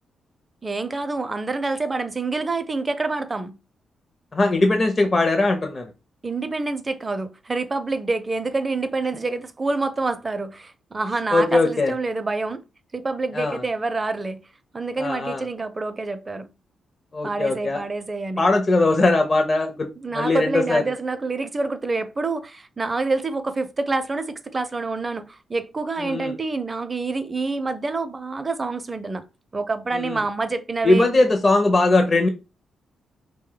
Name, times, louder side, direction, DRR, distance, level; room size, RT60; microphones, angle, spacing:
voice 1, 0.6-3.6 6.2-12.6 12.9-14.4 14.7-16.5 17.2-18.5 20.0-29.2 29.5-31.1, right 3 dB, 35° right, 0.5 m, -27 dB
voice 2, 4.3-5.9 11.3-11.9 13.3-13.6 15.0-15.4 17.1-17.8 18.4-19.9 20.1-20.9 26.0-26.3 29.9-30.2 30.8-32.3, left 2 dB, 40° left, 0.5 m, -20 dB
2.6 x 2.1 x 3.8 m
supercardioid pair, 55°, 0 cm